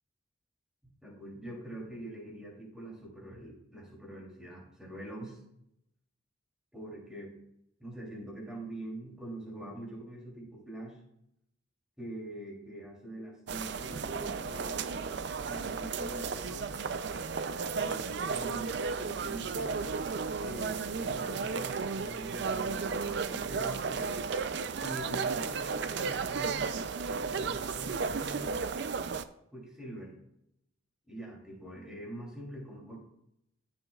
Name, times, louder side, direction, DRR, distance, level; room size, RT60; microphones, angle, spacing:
voice 1, 1.0-5.4 6.7-7.3 7.8-11.0 12.0-14.9 15.5-16.9 17.8-20.1 20.4-24.2 24.8-26.7 27.1-28.7 29.5-30.2 31.1-33.0, right 1 dB, 5° right, -3 dB, 2.9 m, -44 dB
sound 1, 13.5-29.2, right 5 dB, 55° right, 0.4 m, -34 dB
14.5 x 7.0 x 2.4 m, 0.79 s
head